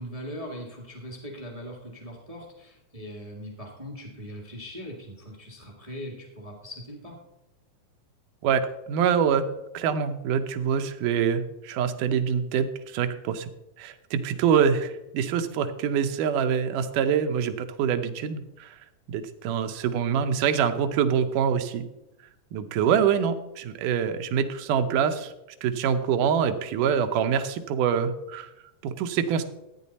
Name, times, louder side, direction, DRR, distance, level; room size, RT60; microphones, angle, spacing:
voice 1, 0.0-7.2, equal, 40° right, 0 dB, 0.5 m, -40 dB
voice 2, 8.4-9.5 9.7-13.5 13.8-18.8 19.1-21.8 22.5-25.3 25.6-28.5 28.8-29.4, right 7 dB, 85° right, 8 dB, 2.4 m, -25 dB
13.5 x 9.3 x 4.1 m, 0.92 s
omnidirectional pair, 3.6 m